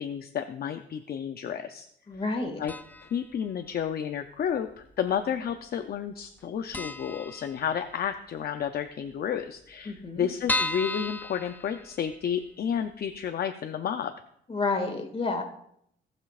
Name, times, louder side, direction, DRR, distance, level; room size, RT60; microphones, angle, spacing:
voice 1, 0.0-1.9 2.6-2.7 3.1-14.1, left 8 dB, 50° left, 7 dB, 0.6 m, -31 dB
voice 2, 2.1-2.6 9.9-10.3 14.5-15.4, left 3 dB, 30° left, 3 dB, 2.0 m, -30 dB
sound 1, 2.7-3.2 3.5-3.6 4.5-5.2 5.5-5.6 5.9-6.0 6.4-6.5 6.7-8.1 8.4-8.5 8.8-8.9 9.1-9.2 9.7-12.3 12.8-12.9 13.2-13.3, left 2 dB, 10° left, 0.5 m, -34 dB
17.5 x 6.3 x 2.5 m, 0.72 s
cardioid pair, 90°, 20 cm